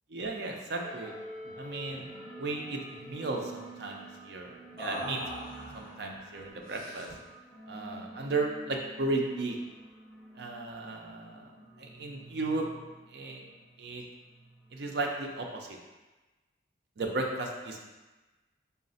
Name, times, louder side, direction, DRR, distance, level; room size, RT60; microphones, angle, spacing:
voice 1, 0.1-1.1 1.6-2.1 2.4-5.2 5.7-7.1 7.7-9.6 10.4-11.5 11.8-12.7 13.1-13.4 13.8-14.0 14.7-15.8 17.0-17.9, right 2 dB, 60° right, 1 dB, 0.5 m, -35 dB
sound 1, 0.8-15.6, right 2 dB, 5° left, 0.7 m, -49 dB
sound 2, 1.4-1.6 1.9-2.1 2.4-3.2 4.8-6.0 6.7-7.3, equal, 30° left, 1.0 m, -43 dB
3.9 x 2.0 x 4.0 m, 1.2 s
head